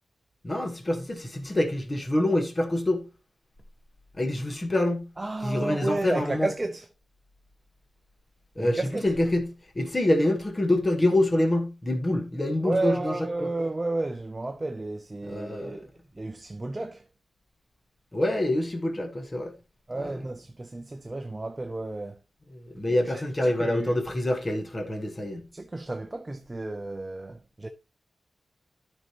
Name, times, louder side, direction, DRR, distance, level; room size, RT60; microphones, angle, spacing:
voice 1, 0.4-3.0 4.2-5.1 5.4-6.5 8.6-9.4 9.7-13.1 13.4-13.5 15.3-15.8 18.1-19.5 20.0-20.1 22.5-25.4, left 1 dB, 25° left, 1.3 m, -26 dB
voice 2, 5.2-6.9 8.6-9.1 12.6-15.9 16.1-17.1 19.9-22.2 22.9-24.0 25.5-27.7, right 2 dB, 20° right, 0.6 m, -32 dB
13.0 x 5.4 x 2.9 m
wide cardioid pair, 135°, 0 cm